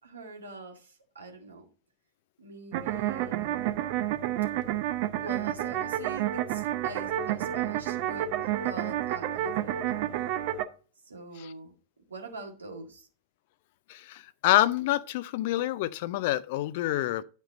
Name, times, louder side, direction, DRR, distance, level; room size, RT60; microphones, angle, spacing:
voice 1, 0.0-1.7 2.4-3.9 5.2-10.2 11.0-11.7 12.1-13.1, right 3 dB, 75° right, 1.9 m, -44 dB
sound 1, 2.7-10.6, right 12 dB, 50° right, 0.7 m, -30 dB
voice 2, 13.9-17.2, left 15 dB, 50° left, 0.4 m, -27 dB
10.0 x 5.3 x 4.1 m
figure-of-eight pair, 90°, 0 cm